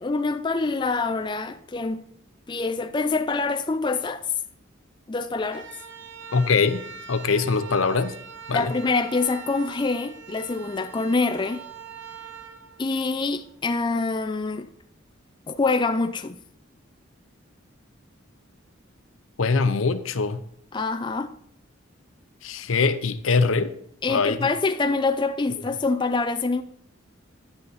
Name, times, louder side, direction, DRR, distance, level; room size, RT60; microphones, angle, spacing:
voice 1, 0.0-2.0 2.5-4.2 5.1-5.7 8.5-11.6 12.8-14.7 15.5-16.4 20.7-21.3 24.0-26.6, left 3 dB, 25° left, 0.4 m, -25 dB
sound 1, 5.4-13.6, right 6 dB, 60° right, 1.1 m, -43 dB
voice 2, 6.3-6.8 7.1-8.1 8.5-8.7 19.4-20.4 22.4-23.7 24.1-24.5, left 4 dB, 80° left, 0.7 m, -22 dB
10.5 x 8.1 x 4.0 m
head